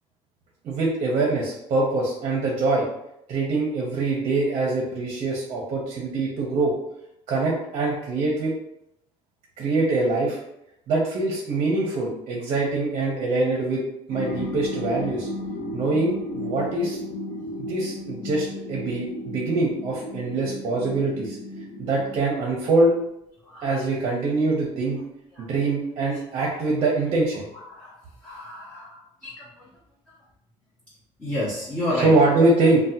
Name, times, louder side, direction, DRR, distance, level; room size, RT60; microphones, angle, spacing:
voice 1, 0.6-2.9 3.3-6.7 7.3-8.5 9.6-10.4 10.9-13.8 14.1-15.3 15.7-17.0 17.6-21.4 21.8-22.9 23.6-25.0 25.4-27.5 31.9-32.8, right 2 dB, 45° right, -2 dB, 0.6 m, -24 dB
sound 1, 14.1-22.2, left 1 dB, 55° left, 0.6 m, -34 dB
voice 2, 23.5-23.8 25.4-25.5 27.7-27.9 28.2-29.5 31.2-32.1, left 1 dB, 15° left, -9 dB, 0.7 m, -30 dB
3.3 x 2.1 x 2.7 m, 0.80 s
cardioid pair, 165°, 12 cm